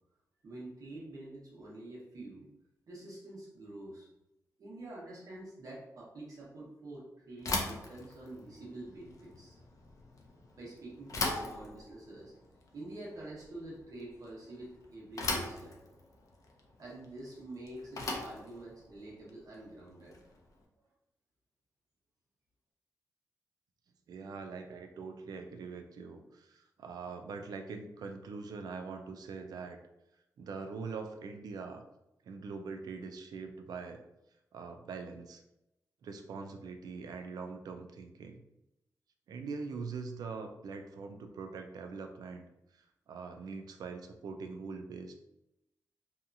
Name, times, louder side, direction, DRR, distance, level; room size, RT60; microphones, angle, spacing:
voice 1, 0.4-2.5 2.9-4.1 4.6-9.6 10.6-12.3 12.7-15.8 16.8-20.2, right 2 dB, 65° right, -5 dB, 1.1 m, -47 dB
Bicycle / Thump thud, 7.4-20.5, left 2 dB, 60° left, 0.5 m, -40 dB
voice 2, 24.1-29.8 30.4-31.8 32.3-34.0 34.5-35.4 36.0-38.4 39.3-42.5 42.8-45.2, right 4 dB, 85° right, 5 dB, 0.3 m, -43 dB
2.8 x 2.3 x 2.5 m, 0.88 s
wide cardioid pair, 120°, 6 cm